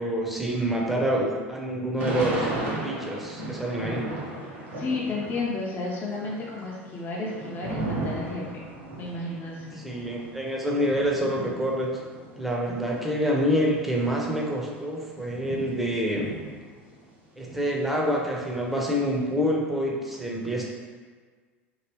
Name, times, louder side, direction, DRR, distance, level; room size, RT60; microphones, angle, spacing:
voice 1, 0.0-2.5 2.7-4.0 9.8-11.9 12.4-16.3 17.4-20.6, equal, 5° right, -2 dB, 0.7 m, -27 dB
Thunder / Rain, 2.0-5.6 5.9-13.0 13.6-13.7 13.9-17.0 17.4-19.1, right 1 dB, 70° right, 1.2 m, -36 dB
voice 2, 4.4-8.7 9.0-9.8, left 3 dB, 30° left, -5 dB, 0.7 m, -32 dB
2.9 x 2.9 x 3.0 m, 1.5 s
figure-of-eight pair, 75°, 7 cm